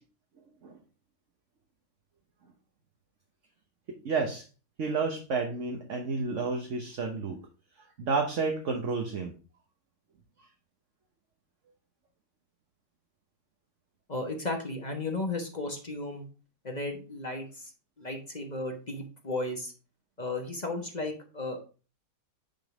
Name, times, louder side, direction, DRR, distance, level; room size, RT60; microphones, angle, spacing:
voice 1, 3.9-4.4 4.8-7.4 8.0-9.3, right 4 dB, 50° right, 3 dB, 1.2 m, -31 dB
voice 2, 14.1-16.2 16.6-17.7 18.0-19.7 20.2-21.7, left 2 dB, 30° left, 3 dB, 1.1 m, -34 dB
9.0 x 3.8 x 4.8 m, 0.35 s
omnidirectional pair, 1.9 m